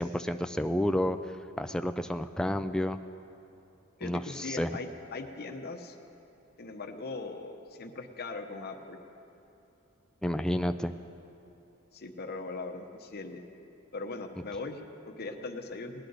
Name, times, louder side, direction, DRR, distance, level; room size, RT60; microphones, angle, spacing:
voice 1, 0.0-3.0 4.0-4.7 10.2-10.9, left 1 dB, 5° left, 8 dB, 0.3 m, -30 dB
voice 2, 4.0-6.0 6.6-9.0 11.9-13.4 13.9-16.1, left 3 dB, 50° left, 4 dB, 0.8 m, -40 dB
19.0 x 10.0 x 4.0 m, 2.8 s
head